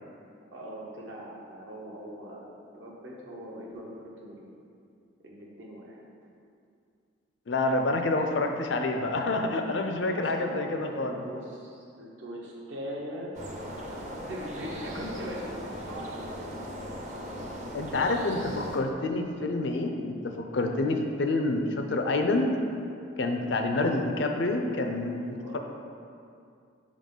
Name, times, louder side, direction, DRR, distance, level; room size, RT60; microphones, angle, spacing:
voice 1, 0.5-4.5 5.2-6.0 10.0-13.3 14.1-16.9 23.7-24.1 25.2-25.6, equal, 75° right, -3 dB, 1.1 m, -41 dB
voice 2, 7.5-11.2 17.7-22.5 23.2-25.6, left 2 dB, 65° left, 4 dB, 0.5 m, -28 dB
sound 1, 13.3-18.8, equal, 40° right, 0.7 m, -38 dB
5.3 x 3.8 x 5.4 m, 2.4 s
head